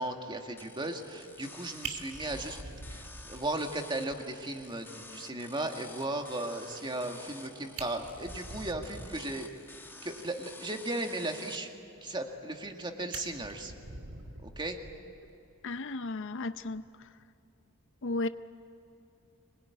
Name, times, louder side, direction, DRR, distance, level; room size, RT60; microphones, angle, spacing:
voice 1, 0.0-2.6 2.9-9.5 10.0-11.7 12.0-13.7 14.4-14.8, right 2 dB, 20° right, 2.0 m, -36 dB
sound 1, 0.6-11.6, left 2 dB, 10° left, 1.7 m, -50 dB
Fire, 1.8-3.8 4.1-4.2 4.6-4.7 5.0-5.1 7.3-7.4 7.7-9.4 12.2-12.7 13.1-15.3 16.6-16.8, right 3 dB, 90° right, 3.0 m, -45 dB
voice 2, 15.6-16.8 18.0-18.3, left 2 dB, 60° left, 0.6 m, -34 dB
25.5 x 21.0 x 9.8 m
head